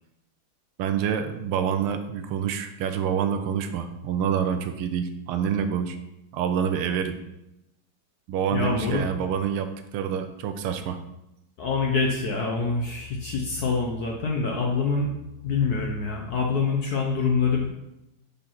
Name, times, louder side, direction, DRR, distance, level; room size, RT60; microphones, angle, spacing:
voice 1, 0.8-6.0 6.3-7.2 8.3-11.0, right 8 dB, 80° right, 8 dB, 1.5 m, -27 dB
voice 2, 8.5-9.0 11.6-15.1 15.4-17.7, left 4 dB, 60° left, 0 dB, 1.0 m, -25 dB
5.0 x 4.5 x 5.7 m, 0.89 s
omnidirectional pair, 2.4 m